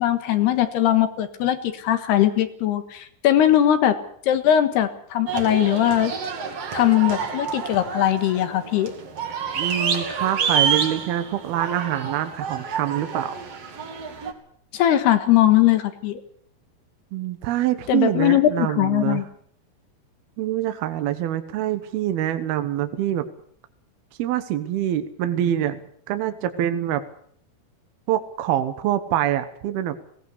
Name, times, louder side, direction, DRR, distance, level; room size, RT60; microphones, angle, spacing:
voice 1, 0.0-4.0 4.3-6.1 6.7-8.9 14.7-16.2 17.9-19.2, left 12 dB, 80° left, 9 dB, 3.6 m, -20 dB
sound 1, 5.3-14.3, right 6 dB, 45° right, 2.8 m, -28 dB
voice 2, 9.5-13.3 17.1-19.2 20.4-23.3 24.2-25.8 26.1-27.0 28.1-30.0, right 12 dB, 75° right, 9 dB, 3.0 m, -25 dB
19.5 x 17.5 x 8.2 m, 0.63 s
omnidirectional pair, 4.7 m